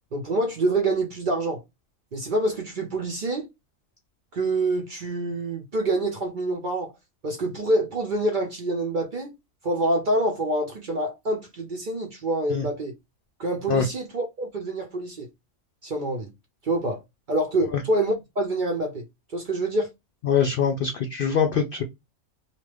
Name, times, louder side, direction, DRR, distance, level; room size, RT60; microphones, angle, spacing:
voice 1, 0.1-1.6 2.1-3.5 4.3-6.9 7.2-9.3 9.6-13.0 13.4-15.3 15.8-16.3 16.6-17.0 17.3-19.9, right 2 dB, 50° right, 0.6 m, -26 dB
voice 2, 20.2-21.8, left 7 dB, 70° left, 0.5 m, -23 dB
2.7 x 2.4 x 3.1 m
omnidirectional pair, 1.4 m